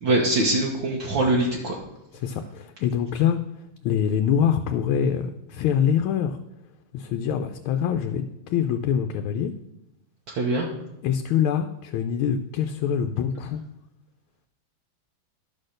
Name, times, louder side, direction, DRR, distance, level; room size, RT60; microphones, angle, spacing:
voice 1, 0.0-1.8 10.3-10.6, right 2 dB, 65° right, -2 dB, 1.7 m, -23 dB
voice 2, 2.1-3.4 3.8-6.4 6.9-9.5 11.0-13.6, left 8 dB, 80° left, 7 dB, 1.4 m, -24 dB
11.5 x 4.3 x 6.4 m, 0.89 s
omnidirectional pair, 2.3 m